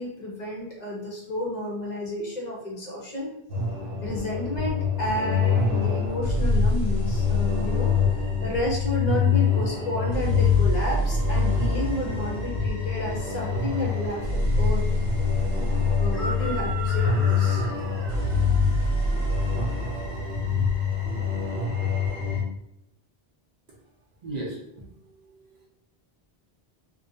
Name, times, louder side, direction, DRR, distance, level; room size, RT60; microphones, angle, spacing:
voice 1, 0.0-3.3 4.0-14.9 16.0-17.7, left 1 dB, 50° left, -2 dB, 0.6 m, -31 dB
sound 1, 3.5-22.4, left 4 dB, 80° right, 0.9 m, -24 dB
Chicken rooster, 13.4-21.7, right 2 dB, ahead, 0.6 m, -41 dB
voice 2, 24.2-25.7, right 2 dB, 50° right, -4 dB, 0.6 m, -38 dB
2.4 x 2.1 x 2.6 m, 0.80 s
omnidirectional pair, 1.0 m